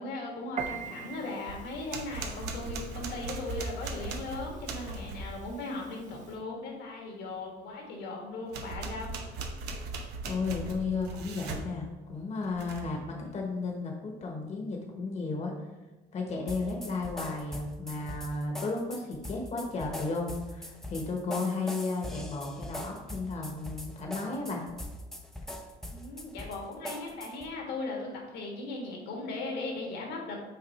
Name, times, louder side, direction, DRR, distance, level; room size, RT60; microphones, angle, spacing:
voice 1, 0.0-9.1 25.9-30.4, left 2 dB, 80° left, 0 dB, 1.7 m, -38 dB
Piano, 0.6-6.4, right 7 dB, 45° right, 0.6 m, -44 dB
sound 1, 1.5-5.4 8.5-11.7 12.4-13.0, right 3 dB, 85° right, 0.8 m, -38 dB
voice 2, 10.2-15.5 16.1-24.6, left 3 dB, 40° left, 1 dB, 1.1 m, -34 dB
sound 2, 16.5-27.5, equal, ahead, 0.6 m, -41 dB
5.9 x 4.0 x 4.1 m, 1.1 s
cardioid pair, 110°, 17 cm